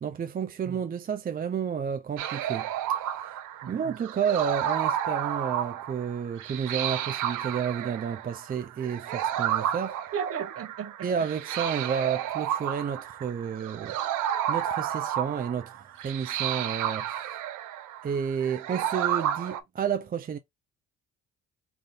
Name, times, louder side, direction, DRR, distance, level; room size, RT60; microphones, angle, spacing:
voice 1, 0.0-2.7 3.7-10.0 11.0-14.0 14.5-17.4 18.0-20.4, right 7 dB, 30° right, 0.4 m, -31 dB
sound 1, 2.2-19.6, right 10 dB, 90° right, 0.6 m, -31 dB
voice 2, 3.6-3.9 10.1-11.1, right 7 dB, 50° right, 0.8 m, -35 dB
3.4 x 2.6 x 3.7 m
cardioid pair, 90°, 30 cm